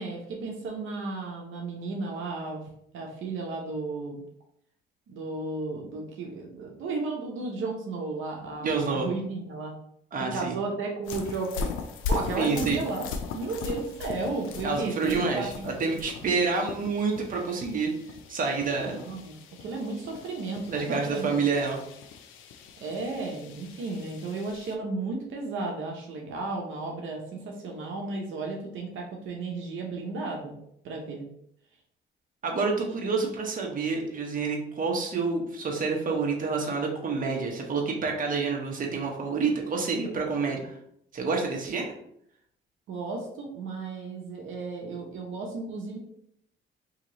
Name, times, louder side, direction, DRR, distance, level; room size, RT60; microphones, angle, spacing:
voice 1, 0.0-2.6 2.9-4.2 5.1-9.7 10.3-11.8 12.1-13.1 13.3-15.7 18.8-19.3 19.6-21.7 22.8-30.5 30.8-31.3 33.0-33.1 42.9-46.0, right 3 dB, 80° right, 0 dB, 0.7 m, -34 dB
voice 2, 8.6-9.1 10.1-10.6 12.4-12.8 14.6-17.9 18.3-19.0 20.7-21.8 32.4-40.8 41.1-41.9, right 4 dB, 45° right, 1 dB, 0.9 m, -28 dB
sound 1, 11.0-24.7, left 5 dB, 85° left, 0.5 m, -39 dB
2.9 x 2.8 x 3.9 m, 0.71 s
cardioid pair, 90°, 20 cm